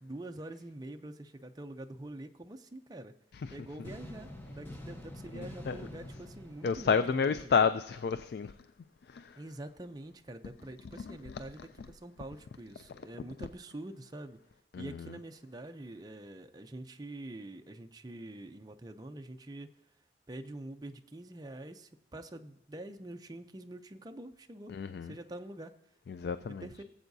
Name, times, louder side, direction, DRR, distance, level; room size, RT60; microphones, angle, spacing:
voice 1, 0.0-3.1 3.5-7.6 9.4-14.4 14.8-19.7 20.3-24.7 25.0-25.7 26.5-26.8, right 1 dB, 20° right, 0.5 m, -45 dB
sound 1, 3.8-7.8, left 1 dB, 10° left, 0.8 m, -47 dB
voice 2, 5.3-5.8 6.6-8.5 9.1-9.4 11.1-11.2 14.7-14.9 24.7-25.1 26.1-26.6, left 6 dB, 60° left, 0.3 m, -30 dB
18.5 x 8.0 x 2.7 m
head